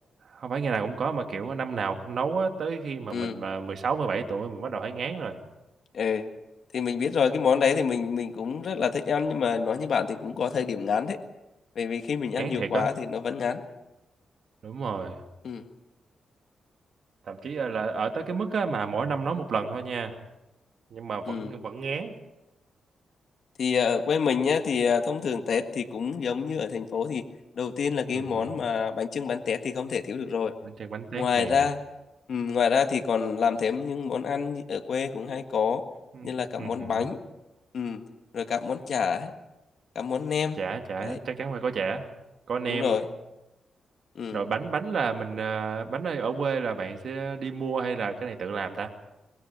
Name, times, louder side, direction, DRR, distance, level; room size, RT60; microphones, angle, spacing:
voice 1, 0.2-5.4 12.4-12.9 14.6-15.2 17.3-20.2 20.9-22.2 28.1-28.5 30.6-31.6 36.1-36.3 36.6-37.1 40.6-42.1 42.5-43.0 44.3-48.9, right 5 dB, 60° right, 5 dB, 2.6 m, -31 dB
voice 2, 5.9-6.3 6.7-11.2 11.8-13.6 15.4-15.7 21.3-21.5 23.6-27.2 27.6-30.5 31.2-31.8 32.3-35.8 36.2-37.2 37.7-38.0 38.3-39.3 40.0-40.6 41.0-41.2 42.7-43.0 44.2-44.4, left 6 dB, 65° left, 5 dB, 1.7 m, -27 dB
24.5 x 21.0 x 6.0 m, 0.95 s
cardioid pair, 100°, 0 cm